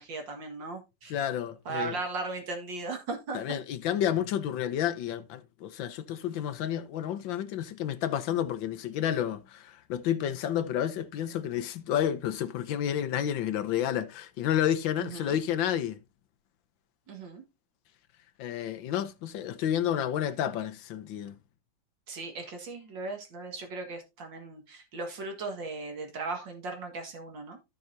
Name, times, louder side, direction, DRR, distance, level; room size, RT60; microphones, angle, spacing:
voice 1, 0.0-1.1 1.7-3.6 15.0-15.4 17.1-17.4 22.1-27.6, right 3 dB, 75° right, 2.6 m, -37 dB
voice 2, 1.1-2.0 3.3-16.0 18.4-21.4, left 10 dB, 85° left, 1.5 m, -30 dB
14.5 x 5.6 x 2.7 m
omnidirectional pair, 2.0 m